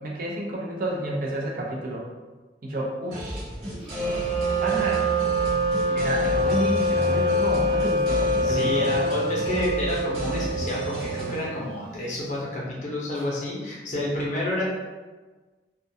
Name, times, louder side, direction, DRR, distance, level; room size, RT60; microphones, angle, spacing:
voice 1, 0.0-2.1 2.6-3.5 4.6-5.1 5.9-8.9 13.1-13.3, right 1 dB, 50° right, -2 dB, 0.4 m, -30 dB
sound 1, 3.1-11.4, equal, 70° right, 0.8 m, -33 dB
Wind instrument woodwind instrument, 3.8-11.7, equal, 5° right, 0.7 m, -25 dB
voice 2, 8.4-14.6, left 1 dB, 40° left, -5 dB, 0.6 m, -29 dB
2.3 x 2.2 x 2.6 m, 1.3 s
head